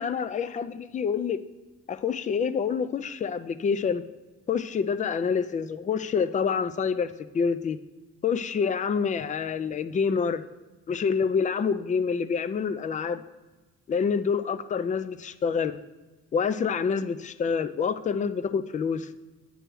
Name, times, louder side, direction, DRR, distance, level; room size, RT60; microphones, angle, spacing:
voice 1, 0.0-1.4 1.9-4.0 4.5-7.8 8.2-10.4 10.9-13.2 13.9-15.8 16.3-19.1, left 6 dB, 25° left, 13 dB, 0.3 m, -27 dB
8.7 x 3.4 x 6.1 m, 1.2 s
cardioid pair, 90°, 30 cm